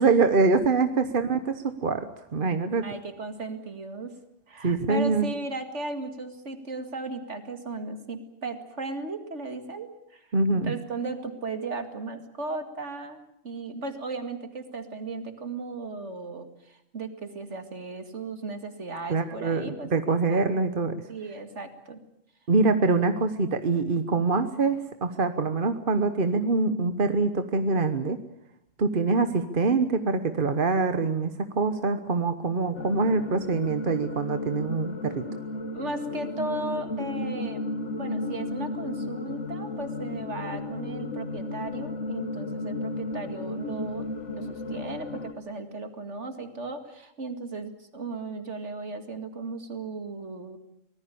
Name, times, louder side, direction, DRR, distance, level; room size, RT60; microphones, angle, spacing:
voice 1, 0.0-2.1 2.3-2.8 4.6-5.3 10.3-10.7 19.1-20.9 22.5-28.2 28.8-31.3 31.5-35.2, right 3 dB, 45° right, 9 dB, 1.3 m, -24 dB
voice 2, 2.8-4.1 4.5-10.2 10.6-20.5 21.1-22.0 35.7-37.6 38.0-50.6, right 3 dB, 65° right, 7 dB, 2.5 m, -36 dB
sound 1, 32.7-45.3, left 2 dB, 65° left, 1.8 m, -34 dB
24.5 x 19.0 x 8.6 m, 0.77 s
omnidirectional pair, 1.3 m